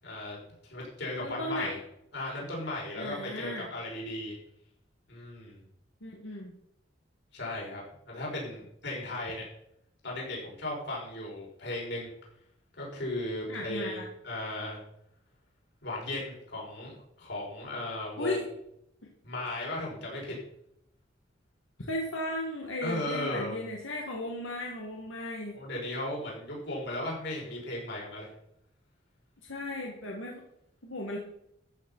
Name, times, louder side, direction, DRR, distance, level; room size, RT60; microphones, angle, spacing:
voice 1, 0.0-0.4 0.7-1.8 2.1-4.4 5.1-5.6 7.3-9.4 10.0-12.1 12.7-14.8 15.8-18.5 19.2-20.4 22.8-23.6 25.5-28.3, left 1 dB, 60° left, -3 dB, 5.7 m, -36 dB
voice 2, 1.2-1.7 3.0-3.7 6.0-6.5 13.5-14.1 18.2-18.4 21.8-25.6 29.4-30.4 30.8-31.2, left 1 dB, 85° left, -1 dB, 2.2 m, -35 dB
14.0 x 7.4 x 5.8 m, 0.75 s
head